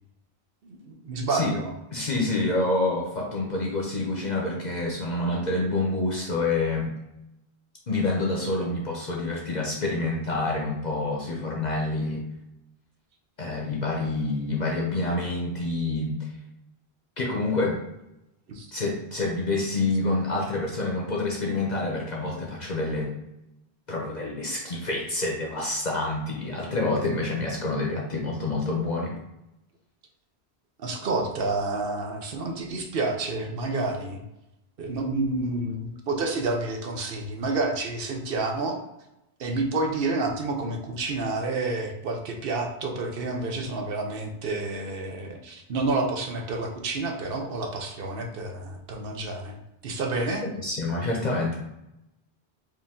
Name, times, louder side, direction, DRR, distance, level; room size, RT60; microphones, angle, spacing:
voice 1, 0.6-1.7 18.5-18.7 30.8-34.2 34.8-38.8 39.4-49.6 49.8-50.4, right 3 dB, 65° right, 3 dB, 0.9 m, -29 dB
voice 2, 1.9-6.9 7.9-12.2 13.4-16.3 17.2-17.8 18.7-23.1 23.9-29.1 50.4-51.6, left 2 dB, 45° left, -2 dB, 0.8 m, -27 dB
4.7 x 2.7 x 3.6 m, 0.90 s
omnidirectional pair, 1.1 m